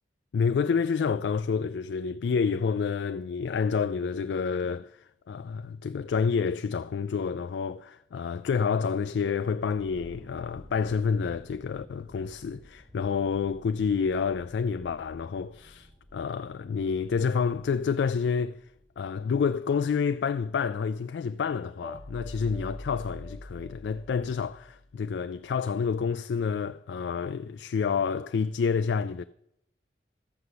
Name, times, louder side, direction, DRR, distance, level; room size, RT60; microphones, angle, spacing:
voice 1, 0.3-18.6 19.0-29.2, left 6 dB, 80° left, 0.3 m, -29 dB
sound 1, 9.5-19.1, equal, 35° right, 5.5 m, -54 dB
sound 2, 21.8-25.0, left 1 dB, 15° left, 0.8 m, -43 dB
13.0 x 7.8 x 6.8 m
head